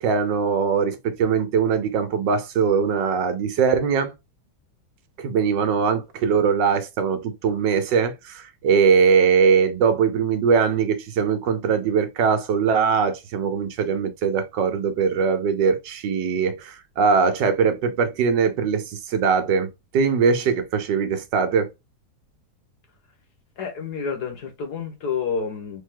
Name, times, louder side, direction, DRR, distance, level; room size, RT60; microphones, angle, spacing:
voice 1, 0.0-4.1 5.2-21.7, right 6 dB, 80° right, 1.5 m, -21 dB
voice 2, 23.6-25.8, left 5 dB, 65° left, 1.8 m, -29 dB
3.6 x 3.6 x 3.8 m
omnidirectional pair, 1.9 m